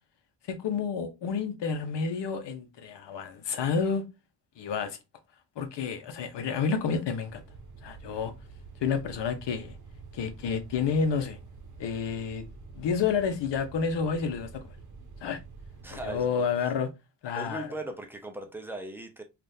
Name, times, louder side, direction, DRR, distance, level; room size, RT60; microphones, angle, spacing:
voice 1, 0.5-4.0 4.6-5.0 5.6-7.4 7.8-8.3 8.8-9.8 10.1-11.4 11.8-12.4 12.7-14.7 15.2-15.4 15.9-16.9 17.2-17.7, left 6 dB, 75° left, 0.9 m, -30 dB
sound 1, 7.3-16.2, right 4 dB, 45° right, 0.8 m, -48 dB
voice 2, 15.8-16.5 17.4-19.2, right 2 dB, 5° right, 0.5 m, -38 dB
3.5 x 2.5 x 2.7 m
wide cardioid pair, 150°, 42 cm